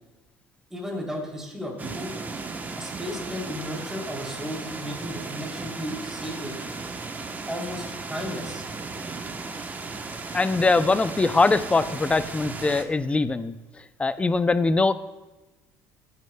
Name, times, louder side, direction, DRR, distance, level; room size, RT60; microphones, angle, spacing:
voice 1, 0.7-2.1 2.8-6.6 7.5-8.6, equal, 5° right, -2 dB, 3.0 m, -34 dB
sound 1, 1.8-12.8, right 3 dB, 20° right, 0.9 m, -36 dB
voice 2, 10.3-13.5 14.0-14.9, left 3 dB, 15° left, 13 dB, 0.5 m, -22 dB
14.5 x 9.5 x 2.2 m, 1.1 s
supercardioid pair, 100°, 8 cm